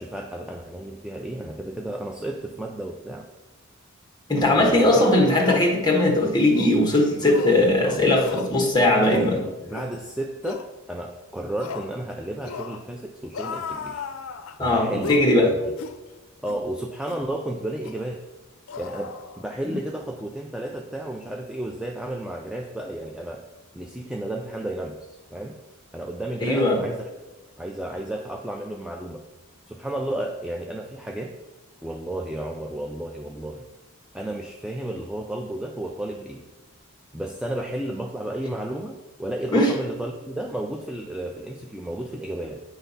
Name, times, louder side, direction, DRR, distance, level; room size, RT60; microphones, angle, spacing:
voice 1, 0.0-3.3 4.6-5.0 7.8-8.4 8.9-14.0 14.6-15.1 15.4-15.6 16.4-18.2 18.8-23.4 23.7-25.6 25.9-27.1 27.6-29.2 29.7-31.4 31.8-33.6 34.1-36.4 37.1-42.6, right 1 dB, 5° right, 2 dB, 0.3 m, -32 dB
voice 2, 4.3-9.4 14.6-15.5 19.7-19.8 26.4-26.8 39.5-39.7, left 1 dB, 20° left, 0 dB, 1.3 m, -19 dB
sound 1, 5.4-5.7 6.5-6.8 7.2-7.7 8.2-8.5 9.0-9.3 9.7-9.9 10.4-10.7 11.6-11.9 12.4-12.8 13.3-14.6 15.0-15.3 15.8-16.0 16.5-16.6 17.1-17.3 17.8-18.0 18.7-19.7 20.0-20.2, left 5 dB, 75° left, 0.4 m, -35 dB
9.0 x 3.4 x 5.5 m, 1.1 s
head